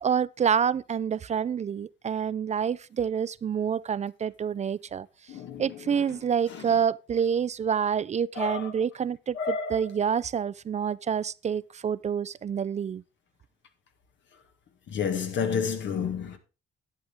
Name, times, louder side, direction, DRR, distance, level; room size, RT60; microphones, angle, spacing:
voice 1, 0.0-5.1 5.6-13.0, right 7 dB, 35° right, 0.4 m, -27 dB
voice 2, 5.3-5.6 8.4-8.6 9.4-9.8 14.9-16.4, left 6 dB, 70° left, 1.8 m, -29 dB
11.0 x 9.0 x 3.5 m
cardioid pair, 90°, 20 cm